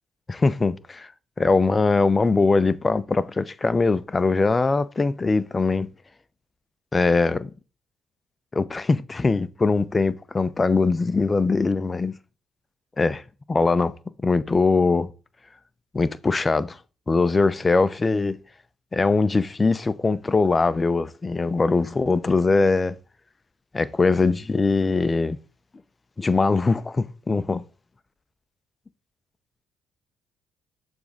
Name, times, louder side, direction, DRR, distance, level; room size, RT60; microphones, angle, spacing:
voice 1, 0.3-1.1 1.4-5.9 6.9-7.5 8.5-12.1 13.0-13.2 13.5-13.9 14.2-15.1 15.9-16.8 17.1-18.4 18.9-23.0 23.7-25.4 26.2-27.6, left 3 dB, 30° left, 0.6 m, -21 dB
6.9 x 3.5 x 4.1 m
hypercardioid pair, 55°, 0 cm